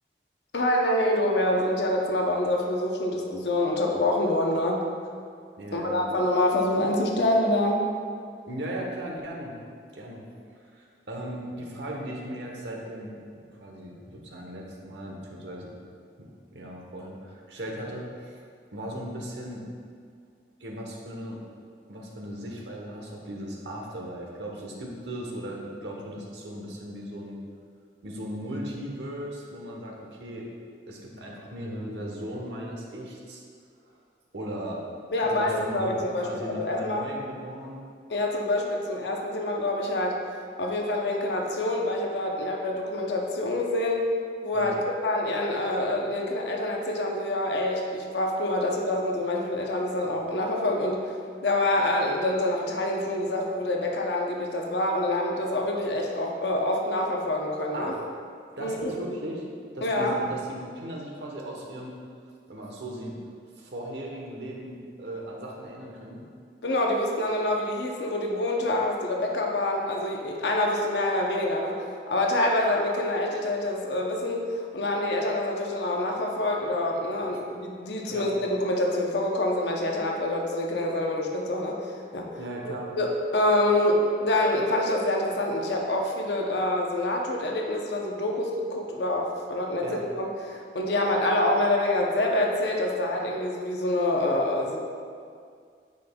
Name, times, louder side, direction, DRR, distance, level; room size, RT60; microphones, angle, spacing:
voice 1, 0.5-4.8 5.7-7.8 35.1-37.0 38.1-40.2 40.6-44.1 44.4-44.8 45.0-51.2 51.4-57.9 58.6-58.9 59.8-60.2 66.6-82.3 82.6-94.8, left 1 dB, 80° left, 0 dB, 0.7 m, -26 dB
voice 2, 5.6-6.0 8.5-9.5 9.9-10.3 10.5-15.7 16.2-18.4 18.7-19.7 20.6-21.4 21.9-27.4 28.0-30.5 30.9-33.4 33.9-34.0 34.3-34.8 35.2-36.0 36.2-37.8 44.5-44.7 57.7-58.0 58.5-59.4 59.7-61.9 62.5-63.1 63.5-66.2 77.2-77.4 78.1-78.3 82.4-82.9 89.8-90.0, right 1 dB, 85° right, -1 dB, 1.0 m, -37 dB
9.1 x 5.2 x 2.3 m, 2.2 s
head